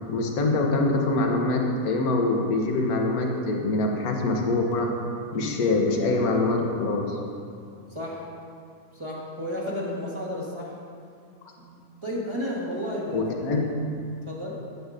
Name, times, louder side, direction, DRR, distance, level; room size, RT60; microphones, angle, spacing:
voice 1, 0.1-4.9 5.3-7.2 13.1-13.9, left 2 dB, 70° left, 2 dB, 1.4 m, -24 dB
voice 2, 7.9-8.3 8.9-10.8 11.6-13.2 14.3-14.5, equal, 20° right, -6 dB, 1.1 m, -32 dB
10.5 x 7.9 x 2.5 m, 2.5 s
omnidirectional pair, 1.7 m